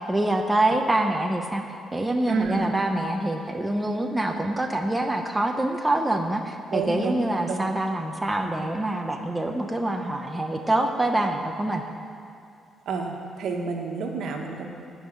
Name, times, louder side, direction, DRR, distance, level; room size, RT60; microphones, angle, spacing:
voice 1, 0.1-1.6 1.9-11.8, right 1 dB, 10° right, 3 dB, 0.8 m, -25 dB
voice 2, 2.3-2.7 6.7-7.2 7.5-7.7 8.4-8.6 12.9-14.7, right 4 dB, 75° right, 2 dB, 1.5 m, -29 dB
13.5 x 5.5 x 9.0 m, 2.4 s
cardioid pair, 130°, 0 cm